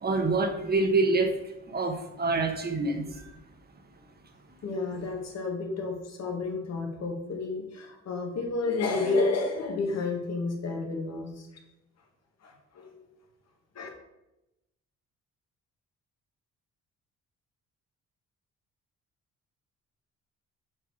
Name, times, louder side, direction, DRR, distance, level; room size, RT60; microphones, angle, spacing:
voice 1, 0.0-1.4 1.7-3.2, right 3 dB, 30° right, 5 dB, 1.3 m, -26 dB
voice 2, 4.6-11.5 12.4-13.1 13.8-13.9, left 3 dB, 60° left, 1 dB, 1.9 m, -31 dB
7.7 x 4.6 x 4.7 m, 0.91 s
cardioid pair, 90°, 30 cm